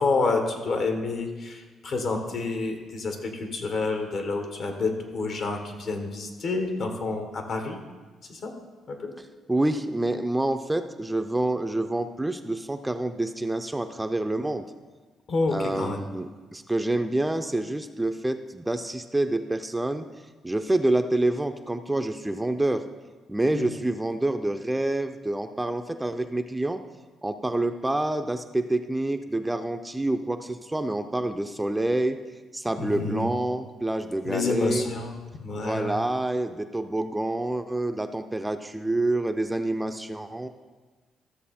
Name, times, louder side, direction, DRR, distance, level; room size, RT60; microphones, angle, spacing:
voice 1, 0.0-7.8 8.3-8.5 8.9-9.1 15.3-16.0 23.5-23.7 32.8-33.3 34.2-36.0, left 3 dB, 60° left, 5 dB, 1.5 m, -28 dB
voice 2, 9.5-14.7 15.5-20.1 20.4-22.8 23.3-26.8 27.2-32.2 32.5-34.9 35.6-40.5, right 1 dB, 10° right, 8 dB, 0.5 m, -27 dB
13.5 x 6.7 x 4.3 m, 1.3 s
cardioid pair, 90°, 0 cm